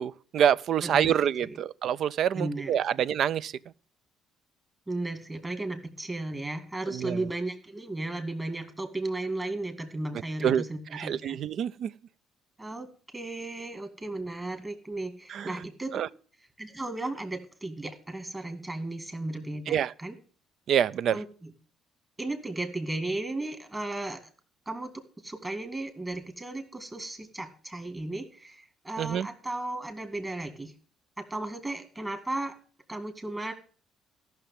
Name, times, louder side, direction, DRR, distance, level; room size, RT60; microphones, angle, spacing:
voice 1, 0.0-3.5 6.9-7.2 10.4-10.6 10.9-11.9 15.3-15.5 15.9-16.1 19.7-19.9 20.7-21.2 29.0-29.3, right 9 dB, 65° right, 0.4 m, -26 dB
voice 2, 0.8-1.6 2.3-2.7 4.9-11.4 12.6-12.9 13.1-16.0 16.6-20.1 21.1-21.5 22.2-24.2 24.7-30.7 31.2-32.6 32.9-33.5, right 2 dB, 20° right, 2.1 m, -35 dB
13.5 x 6.0 x 7.2 m
cardioid pair, 90°, 0 cm